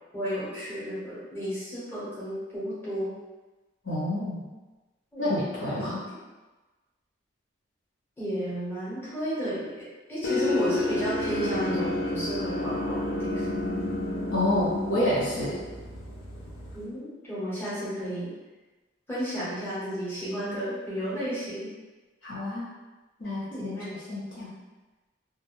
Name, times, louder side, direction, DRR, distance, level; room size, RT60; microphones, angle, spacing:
voice 1, 0.1-3.1 5.1-5.3 5.6-5.7 8.2-13.5 16.7-18.3 19.1-21.7 23.5-23.9, equal, 10° left, -10 dB, 0.8 m, -33 dB
voice 2, 3.8-4.4 5.2-6.0 14.3-15.6 22.2-22.7 23.2-24.5, left 1 dB, 70° left, -8 dB, 0.8 m, -28 dB
sound 1, 10.2-16.8, left 2 dB, 55° left, 0.4 m, -30 dB
2.3 x 2.1 x 3.0 m, 1.2 s
head